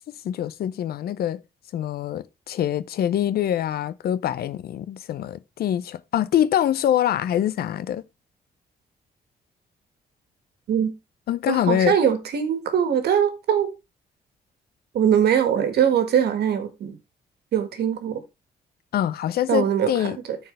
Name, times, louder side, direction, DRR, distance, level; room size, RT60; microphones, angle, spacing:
voice 1, 0.2-1.4 1.7-8.0 11.3-11.9 18.9-20.2, left 10 dB, 70° left, 0.6 m, -24 dB
voice 2, 11.5-13.7 14.9-17.0 17.5-18.2 19.5-20.4, right 8 dB, 75° right, 1.7 m, -22 dB
13.5 x 4.6 x 3.2 m
cardioid pair, 95°, 17 cm